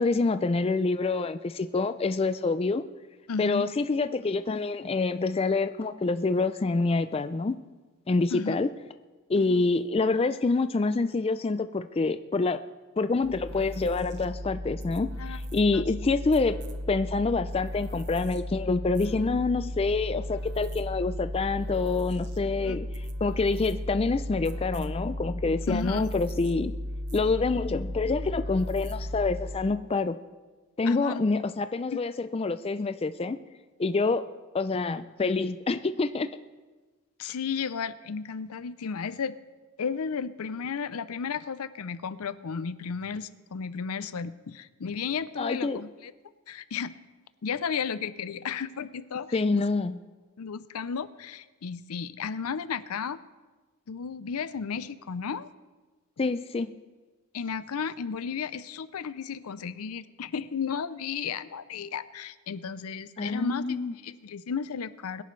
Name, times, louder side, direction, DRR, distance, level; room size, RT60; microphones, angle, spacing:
voice 1, 0.0-2.8 3.4-7.6 8.1-8.7 9.3-12.6 13.0-16.6 16.9-26.7 27.1-30.2 30.8-33.4 33.8-34.2 34.5-36.3 45.4-45.8 49.3-50.0 56.2-56.8 63.2-63.9, left 3 dB, 25° left, 11 dB, 0.3 m, -27 dB
voice 2, 3.3-3.7 8.3-8.6 9.4-9.7 15.2-15.4 15.7-15.9 22.6-22.8 25.7-26.1 30.8-31.2 31.9-32.0 37.2-39.4 39.8-46.1 46.5-46.9 47.4-49.7 50.4-53.2 53.9-55.5 57.3-63.6 64.0-65.2, left 6 dB, 80° left, 15 dB, 0.5 m, -34 dB
sound 1, 13.2-29.8, left 1 dB, 50° right, 0.9 m, -35 dB
21.5 x 10.5 x 3.2 m, 1.3 s
head